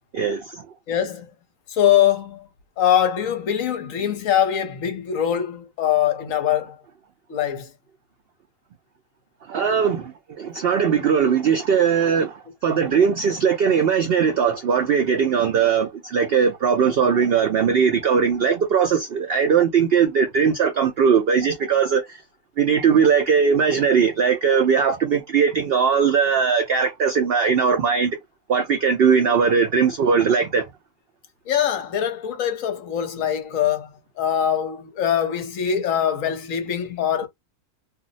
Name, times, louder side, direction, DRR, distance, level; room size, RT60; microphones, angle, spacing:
voice 1, 0.9-1.3 1.7-2.4 2.8-6.8 7.3-7.7 31.5-33.9 34.2-37.3, left 10 dB, 65° left, 1.0 m, -22 dB
voice 2, 9.5-10.1 10.4-12.3 12.6-22.0 22.6-28.2 28.5-30.6, right 6 dB, 85° right, 0.5 m, -19 dB
2.6 x 2.0 x 3.8 m
omnidirectional pair, 1.6 m